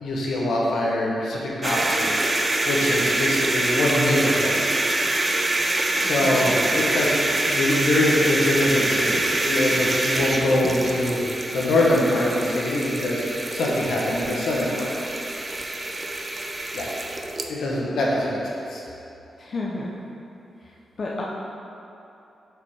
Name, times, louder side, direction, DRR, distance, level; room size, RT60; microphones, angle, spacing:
voice 1, 0.0-4.6 6.0-7.1 7.5-14.9 16.7-16.9 17.5-18.8, left 1 dB, 80° left, -4 dB, 1.1 m, -23 dB
sound 1, 1.6-17.5, right 2 dB, 30° right, 0.5 m, -25 dB
voice 2, 6.0-6.4 19.4-19.9 20.6-20.7 21.0-21.2, left 2 dB, 50° left, -4 dB, 0.6 m, -31 dB
5.3 x 4.3 x 4.7 m, 2.9 s
cardioid pair, 75°, 0 cm